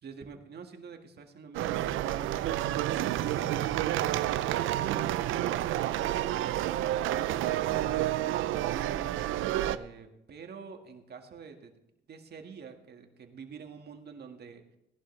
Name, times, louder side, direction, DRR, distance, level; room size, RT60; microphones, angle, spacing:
voice 1, 0.0-3.5 7.7-9.0 9.5-11.7 12.1-14.6, right 6 dB, 55° right, 5 dB, 1.8 m, -47 dB
sound 1, 1.5-9.8, right 13 dB, 90° right, 0.6 m, -29 dB
18.0 x 11.0 x 3.3 m, 0.84 s
cardioid pair, 90°, 20 cm